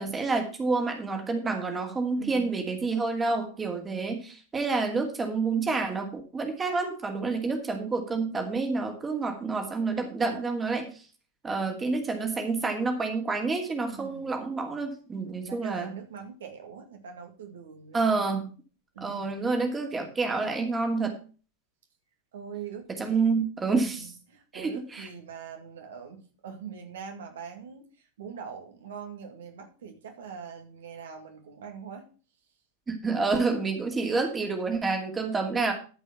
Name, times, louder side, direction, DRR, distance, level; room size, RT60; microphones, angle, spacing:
voice 1, 0.0-10.9 11.4-15.9 17.9-18.5 19.0-21.2 23.0-24.1 24.5-25.1 32.9-35.7, right 4 dB, 15° right, 4 dB, 2.5 m, -28 dB
voice 2, 2.2-2.6 11.7-11.8 13.9-14.3 15.4-18.4 18.9-19.4 22.3-23.4 23.9-32.1, right 7 dB, 60° right, 4 dB, 2.2 m, -43 dB
13.5 x 5.4 x 5.8 m, 0.37 s
figure-of-eight pair, 90°, 0 cm